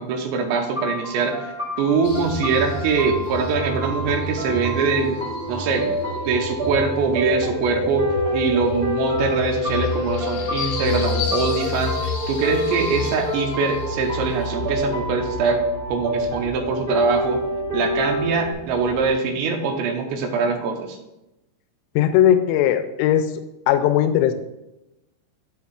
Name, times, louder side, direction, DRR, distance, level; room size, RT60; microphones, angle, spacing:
voice 1, 0.0-5.9 6.3-8.0 8.3-15.6 15.9-17.4 17.7-21.0, right 5 dB, 80° right, 3 dB, 3.0 m, -23 dB
sound 1, 0.8-18.5, equal, 15° right, 1.8 m, -29 dB
sound 2, 2.0-19.2, left 2 dB, 65° left, 1.8 m, -29 dB
voice 2, 22.0-23.3 23.7-24.3, left 11 dB, 85° left, 9 dB, 2.5 m, -18 dB
13.0 x 5.4 x 2.4 m, 0.94 s
omnidirectional pair, 5.2 m